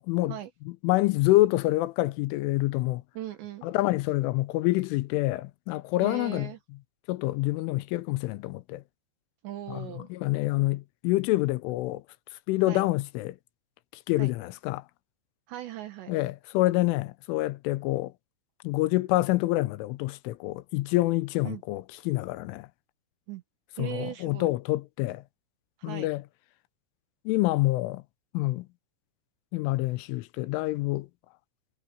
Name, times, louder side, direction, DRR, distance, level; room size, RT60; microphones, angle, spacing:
voice 1, 0.0-0.4 0.7-3.0 3.6-6.5 7.1-8.8 9.7-12.0 12.5-13.4 14.1-14.8 16.1-18.1 18.6-22.7 23.8-25.2 25.8-26.2 27.3-28.0 28.3-28.7 29.5-31.1, left 18 dB, 90° left, 3.3 m, -27 dB
voice 2, 3.2-3.7 6.0-6.6 9.4-10.1 12.7-12.8 14.2-14.3 15.5-16.1 21.4-21.6 23.3-23.4 23.7-24.5 25.8-26.1, right 12 dB, 75° right, 3.2 m, -38 dB
omnidirectional pair, 5.5 m